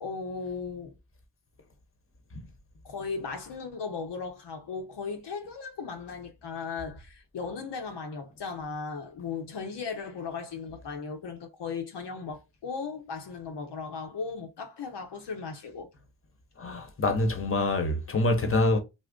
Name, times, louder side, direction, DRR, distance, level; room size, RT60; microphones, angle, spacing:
voice 1, 0.0-1.0 2.8-15.9, left 5 dB, 75° left, 0.8 m, -37 dB
voice 2, 16.6-18.8, left 2 dB, 30° left, 0.9 m, -26 dB
2.5 x 2.1 x 3.5 m
cardioid pair, 50°, 42 cm